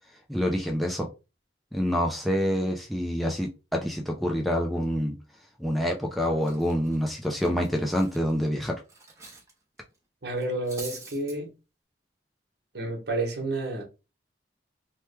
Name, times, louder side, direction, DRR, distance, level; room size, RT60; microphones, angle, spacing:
voice 1, 0.3-1.1 1.7-5.2 5.6-8.8, equal, ahead, 0.4 m, -27 dB
Cutlery silverware, 6.0-6.1 6.4-9.5 9.8-10.0 10.4-11.4, right 3 dB, 15° right, 0.8 m, -45 dB
voice 2, 10.2-11.5 12.7-13.8, right 2 dB, 60° right, 1.1 m, -30 dB
3.1 x 2.2 x 3.2 m
head